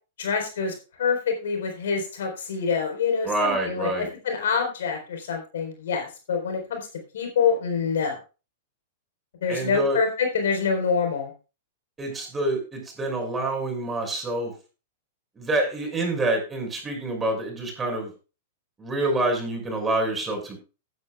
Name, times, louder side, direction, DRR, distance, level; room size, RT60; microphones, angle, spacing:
voice 1, 0.2-6.8 7.1-8.2 9.4-11.3, left 5 dB, 70° left, 4 dB, 4.1 m, -26 dB
voice 2, 3.2-4.1 9.5-10.0 12.0-14.5 15.4-18.1 18.8-20.6, right 2 dB, 15° right, 2 dB, 6.0 m, -27 dB
16.0 x 10.0 x 2.3 m, 0.32 s
hypercardioid pair, 110°, 0 cm